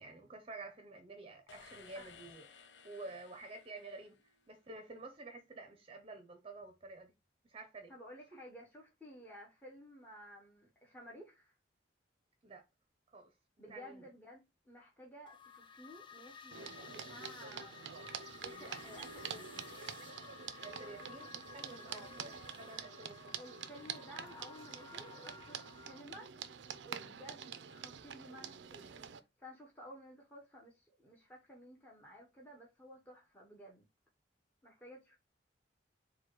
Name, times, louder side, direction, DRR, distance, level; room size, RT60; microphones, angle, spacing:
voice 1, 0.0-7.1 7.4-7.9 12.4-12.6 13.1-14.1 20.6-23.3 26.9-27.1, right 3 dB, 30° right, 0.6 m, -51 dB
sound 1, 1.5-4.6, left 6 dB, 75° left, 0.6 m, -59 dB
voice 2, 7.9-11.5 13.6-18.0 18.4-19.8 21.8-22.2 23.4-25.6 25.9-26.5 26.8-29.0 29.4-33.8 34.6-35.2, equal, 10° left, 0.9 m, -54 dB
sound 2, 15.3-26.0, left 6 dB, 30° left, 0.5 m, -54 dB
sound 3, 16.5-29.2, right 7 dB, 80° right, 0.5 m, -47 dB
4.4 x 2.2 x 4.5 m
head